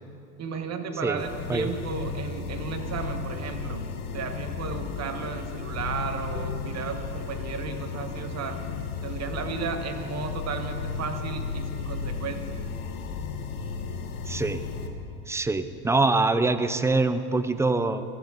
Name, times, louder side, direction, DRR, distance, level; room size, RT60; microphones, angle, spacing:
voice 1, 0.4-3.9 4.1-8.6 9.0-12.7, right 5 dB, 35° right, 6 dB, 1.6 m, -34 dB
sound 1, 1.2-14.9, left 5 dB, 80° left, 1.6 m, -34 dB
voice 2, 14.3-14.6 15.3-18.0, right 3 dB, 5° right, 11 dB, 0.4 m, -24 dB
19.0 x 14.0 x 4.0 m, 2.6 s
hypercardioid pair, 105°, 45 cm